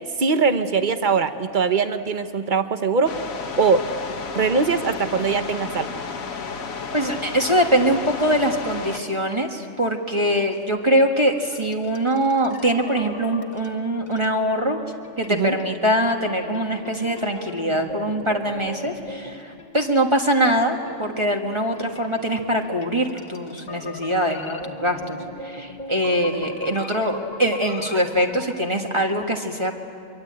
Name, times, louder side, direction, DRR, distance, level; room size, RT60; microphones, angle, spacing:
voice 1, 0.2-3.2 3.6-3.9 4.3-5.9 15.3-15.6, right 5 dB, 40° right, 9 dB, 1.1 m, -21 dB
sound 1, 3.0-9.0, left 5 dB, 80° left, 1.7 m, -32 dB
voice 2, 6.9-14.8 15.2-29.8, equal, 20° right, 3 dB, 1.6 m, -23 dB
sound 2, 11.4-14.4 14.9-20.2 20.6-28.6, left 2 dB, 35° left, 1.4 m, -40 dB
25.0 x 23.0 x 8.8 m, 2.7 s
omnidirectional pair, 1.4 m